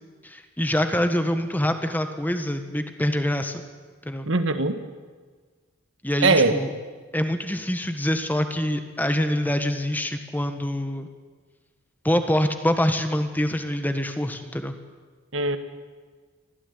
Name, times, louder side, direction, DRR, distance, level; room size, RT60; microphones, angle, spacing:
voice 1, 0.2-3.6 4.0-4.3 6.0-6.7 7.1-11.1 12.0-14.8, left 1 dB, 10° left, 7 dB, 1.5 m, -25 dB
voice 2, 4.3-4.8 6.2-6.6 15.3-15.6, right 3 dB, 70° right, 9 dB, 1.8 m, -20 dB
25.0 x 16.0 x 9.7 m, 1.5 s
head